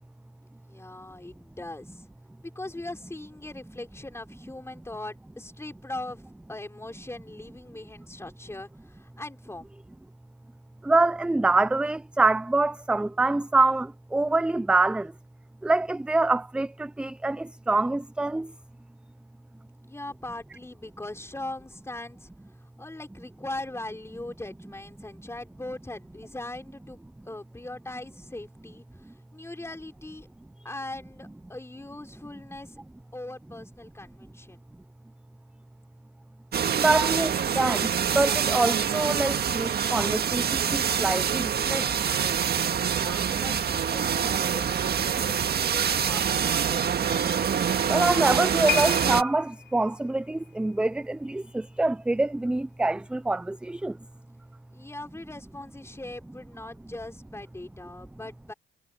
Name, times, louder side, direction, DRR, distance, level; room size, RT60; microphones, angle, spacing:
voice 1, 0.6-2.1 2.4-6.2 6.5-9.7 19.8-22.3 22.6-30.3 30.6-32.8 33.1-34.6 42.9-47.4 54.7-58.5, left 2 dB, 15° left, 4.5 m, -40 dB
voice 2, 10.8-15.1 15.6-18.5 36.8-40.4 40.7-41.9 47.9-53.9, right 2 dB, 5° right, 0.3 m, -25 dB
sound 1, 36.5-49.2, right 8 dB, 55° right, 1.7 m, -26 dB
sound 2, 48.7-52.0 52.3-52.5 53.2-53.3, left 10 dB, 65° left, 3.1 m, -35 dB
cardioid pair, 90°, 20 cm